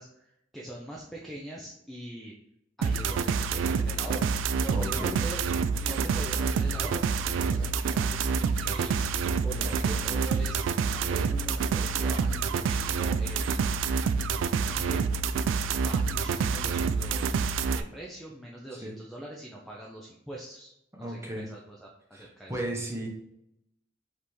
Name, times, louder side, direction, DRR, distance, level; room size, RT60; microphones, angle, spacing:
voice 1, 0.0-2.3 2.8-4.4 4.6-5.4 5.8-13.7 14.7-15.0 15.7-20.7 21.0-22.5, right 1 dB, ahead, -3 dB, 0.5 m, -43 dB
sound 1, 2.8-17.8, right 5 dB, 85° right, 0.3 m, -27 dB
voice 2, 4.7-5.2 9.6-10.0 18.8-18.9 21.0-21.5 22.1-23.1, right 1 dB, 15° right, -1 dB, 1.0 m, -35 dB
4.9 x 3.4 x 3.1 m, 0.81 s
head